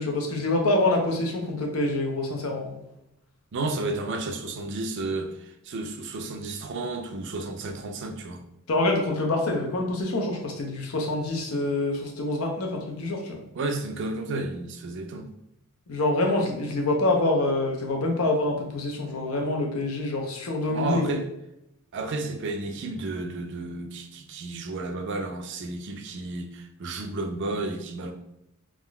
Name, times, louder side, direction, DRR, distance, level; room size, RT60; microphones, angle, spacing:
voice 1, 0.0-2.7 8.7-13.4 15.9-21.2, left 2 dB, 80° left, 1 dB, 0.7 m, -26 dB
voice 2, 3.5-8.4 13.5-15.3 20.7-21.3 21.9-28.1, right 2 dB, 55° right, 5 dB, 0.4 m, -32 dB
3.5 x 2.4 x 2.2 m, 0.87 s
head